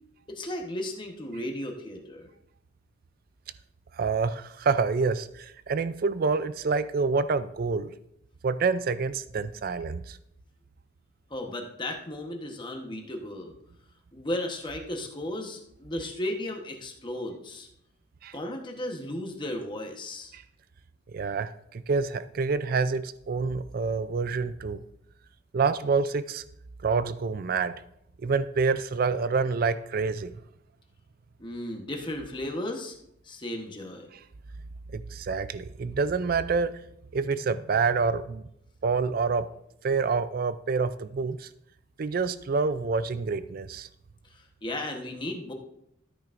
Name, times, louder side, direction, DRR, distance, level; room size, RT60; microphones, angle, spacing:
voice 1, 0.3-2.3 11.3-13.5 14.1-17.7 18.3-20.4 31.4-33.0 33.2-34.1 44.3-45.5, left 1 dB, 25° left, 2 dB, 1.1 m, -35 dB
voice 2, 3.9-7.9 8.4-10.2 18.2-18.3 20.3-20.4 21.1-24.8 25.5-26.4 26.8-27.8 28.2-30.3 34.9-36.7 37.1-38.4 38.8-39.5 39.8-41.5 42.0-43.9, right 4 dB, 50° right, 14 dB, 0.4 m, -27 dB
13.5 x 9.0 x 2.5 m, 0.75 s
head